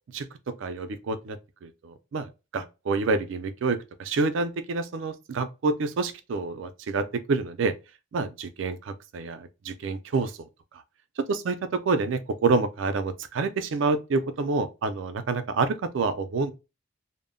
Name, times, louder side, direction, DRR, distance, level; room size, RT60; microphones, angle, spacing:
voice 1, 0.6-1.4 1.6-7.7 8.1-10.3 11.3-16.5, right 4 dB, 65° right, 0.4 m, -28 dB
2.1 x 2.0 x 3.6 m
head